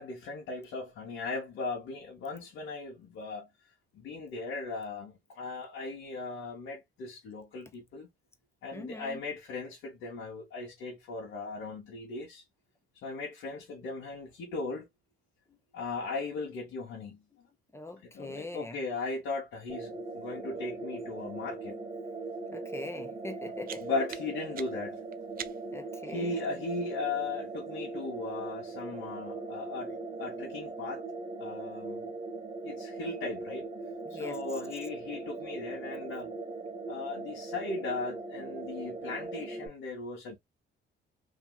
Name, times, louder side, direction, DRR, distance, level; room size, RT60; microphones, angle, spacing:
voice 1, 0.0-3.5 3.9-8.1 8.6-12.4 13.0-14.9 15.7-17.5 18.0-21.8 23.8-25.0 26.1-31.0 31.4-32.1 32.6-33.6 34.1-36.3 36.9-40.4, left 3 dB, 80° left, 1.3 m, -37 dB
voice 2, 8.7-9.2 17.7-18.8 22.5-23.9 25.7-26.6 34.0-34.4, left 2 dB, 15° left, 0.8 m, -42 dB
sound 1, 19.7-39.7, right 3 dB, 25° right, 1.0 m, -40 dB
sound 2, 23.2-25.9, right 9 dB, 50° right, 0.4 m, -46 dB
2.9 x 2.7 x 2.3 m
cardioid pair, 90°, 20 cm